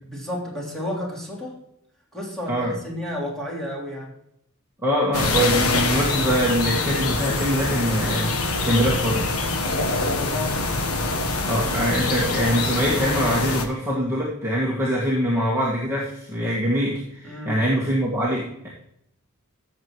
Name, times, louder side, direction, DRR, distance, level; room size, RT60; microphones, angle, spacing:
voice 1, 0.1-1.6 2.1-4.1 10.2-10.6 17.2-17.6, left 1 dB, ahead, -5 dB, 3.4 m, -31 dB
voice 2, 4.8-9.3 11.5-18.7, equal, 15° right, -6 dB, 1.8 m, -23 dB
sound 1, 5.1-13.7, left 3 dB, 85° left, 1.3 m, -24 dB
15.5 x 6.9 x 3.1 m, 0.77 s
head